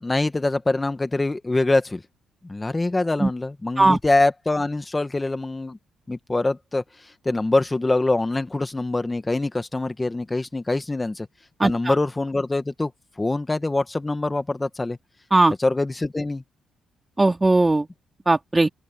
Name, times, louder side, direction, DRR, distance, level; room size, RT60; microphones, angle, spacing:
voice 1, 0.0-2.0 2.4-5.8 6.1-6.8 7.2-11.3 11.6-12.9 13.2-15.0 15.6-16.4, left 2 dB, 15° left, 1.5 m, -24 dB
voice 2, 11.6-11.9 15.3-15.5 17.2-17.9 18.3-18.7, right 2 dB, 15° right, 3.0 m, -18 dB
open air
cardioid pair, 90°, 0 cm